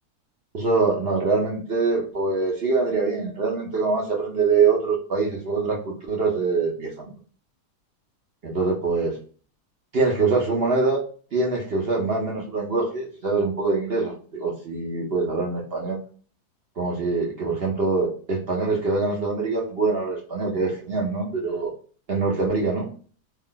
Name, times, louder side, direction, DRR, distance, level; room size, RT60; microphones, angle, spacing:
voice 1, 0.5-7.1 8.4-9.2 9.9-11.0 11.3-16.0 16.8-21.7 22.1-22.9, right 4 dB, 50° right, -1 dB, 0.8 m, -24 dB
3.3 x 2.4 x 3.8 m, 0.41 s
omnidirectional pair, 1.7 m